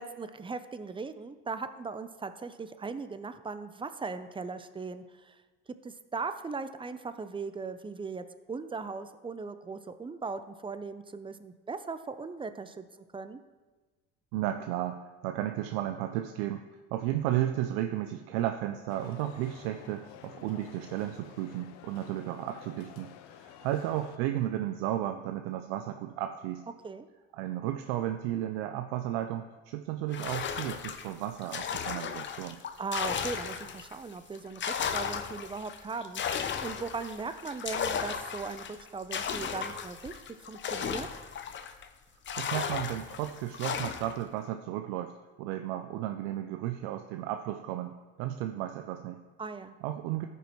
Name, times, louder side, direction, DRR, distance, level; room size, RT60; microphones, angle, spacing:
voice 1, 0.0-5.4 5.8-12.8 13.1-13.4 26.8-27.1 32.8-40.2 40.5-41.1 49.4-49.7, right 4 dB, 15° right, 11 dB, 0.6 m, -38 dB
voice 2, 14.3-16.6 16.9-26.6 27.3-32.6 42.4-45.1 45.4-49.2 49.8-50.3, right 12 dB, 85° right, 7 dB, 0.5 m, -33 dB
sound 1, 18.9-24.2, left 9 dB, 75° left, 0.7 m, -51 dB
sound 2, 30.1-34.0 34.3-41.9 42.3-44.2, left 7 dB, 40° left, 0.7 m, -35 dB
14.0 x 5.4 x 3.1 m, 1.3 s
supercardioid pair, 75°, 29 cm